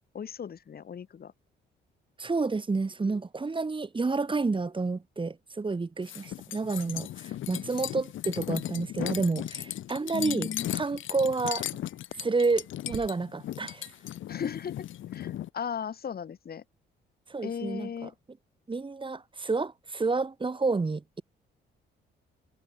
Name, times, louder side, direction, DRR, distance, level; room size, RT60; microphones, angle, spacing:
voice 1, 0.1-1.3 10.1-10.7 14.3-14.9 15.1-16.6 17.4-18.1, left 7 dB, 50° left, 4.0 m, -36 dB
voice 2, 2.2-11.7 12.2-13.9 17.3-18.1 18.7-21.2, right 3 dB, 25° right, 3.7 m, -30 dB
sound 1, 6.0-15.5, left 12 dB, 75° left, 5.8 m, -36 dB
sound 2, 6.0-13.1, right 11 dB, 75° right, 8.0 m, -53 dB
cardioid pair, 90°, 20 cm